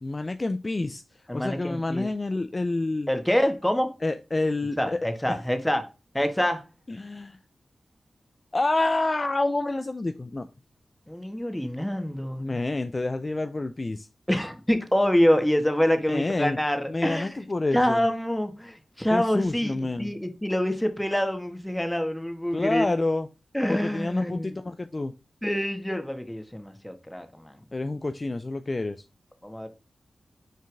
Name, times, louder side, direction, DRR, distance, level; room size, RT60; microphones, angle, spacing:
voice 1, 0.0-1.0 1.3-3.1 4.0-5.0 5.3-5.4 6.9-7.4 8.5-10.5 12.4-14.1 16.1-16.6 16.9-18.0 19.1-20.2 22.5-23.3 23.7-25.1 27.7-29.0, left 2 dB, 40° left, 0.5 m, -28 dB
voice 2, 1.3-2.1 3.1-3.9 4.8-5.8 6.1-6.6 11.1-12.6 14.3-17.3 17.7-22.8 23.5-24.6 25.4-27.5 29.4-29.7, equal, 10° left, 1.5 m, -26 dB
6.3 x 4.4 x 3.4 m
cardioid pair, 45°, 0 cm